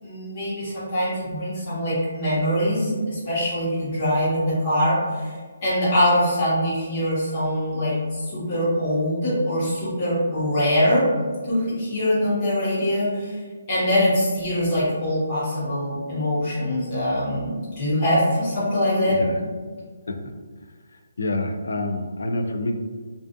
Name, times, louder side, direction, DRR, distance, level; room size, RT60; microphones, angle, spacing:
voice 1, 0.0-5.3 5.6-11.0 11.5-13.4 13.7-19.2, left 1 dB, 25° left, -11 dB, 1.0 m, -23 dB
voice 2, 19.0-19.4 20.1-20.2 21.2-22.7, left 2 dB, 75° left, 5 dB, 0.3 m, -27 dB
2.4 x 2.3 x 2.4 m, 1.5 s
hypercardioid pair, 180°, 0 cm